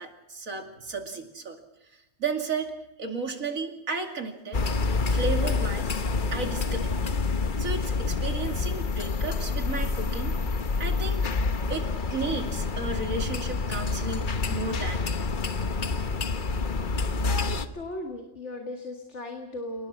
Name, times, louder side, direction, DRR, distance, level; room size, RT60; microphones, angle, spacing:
voice 1, 0.0-1.6 2.2-2.7 3.0-4.6 5.1-6.0 6.3-7.2 7.6-10.3 10.8-11.2 11.7-15.2, right 4 dB, 90° right, 4 dB, 2.9 m, -33 dB
sound 1, 4.5-17.7, left 4 dB, 40° left, 1.1 m, -28 dB
voice 2, 17.3-19.9, left 1 dB, 60° left, 3 dB, 2.4 m, -37 dB
29.0 x 19.0 x 6.2 m, 0.91 s
omnidirectional pair, 1.4 m